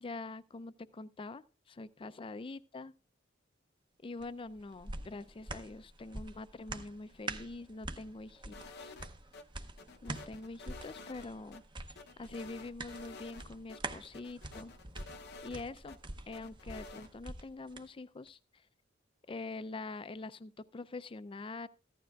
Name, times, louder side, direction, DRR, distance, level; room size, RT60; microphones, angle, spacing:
voice 1, 0.0-2.9 4.0-8.9 10.0-11.6 12.2-14.7 15.4-16.0 16.3-18.4 19.3-21.7, left 3 dB, 30° left, 15 dB, 0.4 m, -44 dB
sound 1, 4.2-17.9 18.3-18.4, right 2 dB, 25° right, 0.7 m, -46 dB
sound 2, 8.5-9.4 9.8-11.6 12.0-13.4 13.7-13.8 14.1-16.0 16.3-17.1, left 3 dB, 60° left, 0.7 m, -50 dB
14.5 x 12.0 x 2.3 m, 0.35 s
head